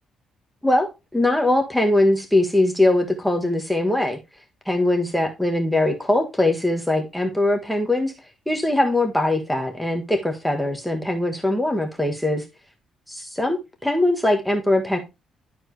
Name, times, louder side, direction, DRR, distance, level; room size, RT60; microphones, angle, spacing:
voice 1, 0.6-4.2 4.6-8.1 8.5-12.4 13.4-13.6 13.8-15.0, left 1 dB, ahead, 1.5 m, -21 dB
11.5 x 4.4 x 3.3 m
cardioid pair, 90°, 0 cm